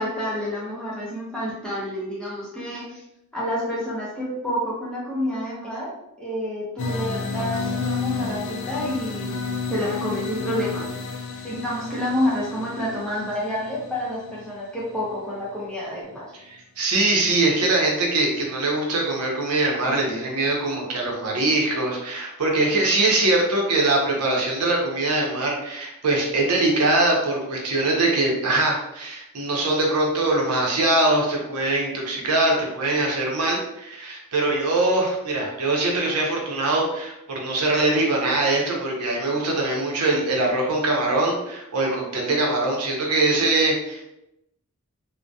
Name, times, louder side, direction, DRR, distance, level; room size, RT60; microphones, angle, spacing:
voice 1, 0.0-3.0 3.3-9.4 9.7-10.9 11.4-16.3, equal, 5° left, -7 dB, 0.6 m, -29 dB
sound 1, 6.8-15.6, left 4 dB, 60° left, 0.3 m, -31 dB
voice 2, 16.5-44.0, right 2 dB, 90° right, -1 dB, 0.7 m, -22 dB
2.3 x 2.1 x 2.6 m, 0.85 s
head